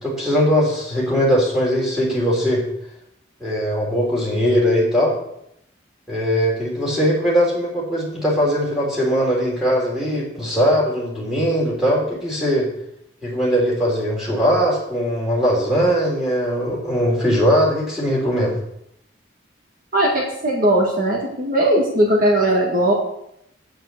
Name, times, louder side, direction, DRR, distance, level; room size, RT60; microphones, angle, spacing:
voice 1, 0.0-2.7 3.4-5.1 6.1-12.7 13.2-18.5, equal, 5° right, -5 dB, 3.3 m, -20 dB
voice 2, 19.9-22.9, right 1 dB, 45° right, -2 dB, 1.8 m, -18 dB
8.0 x 7.8 x 6.7 m, 0.76 s
head